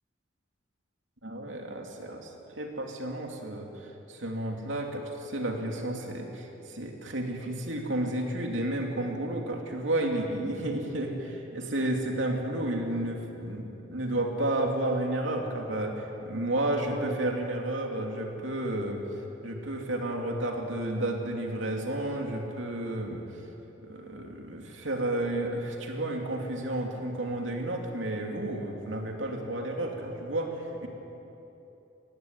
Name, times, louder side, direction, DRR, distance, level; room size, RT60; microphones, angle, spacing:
voice 1, 1.2-19.0 19.4-23.3 23.8-30.9, right 1 dB, 80° right, 1 dB, 2.8 m, -32 dB
18.5 x 15.5 x 9.4 m, 3.0 s
head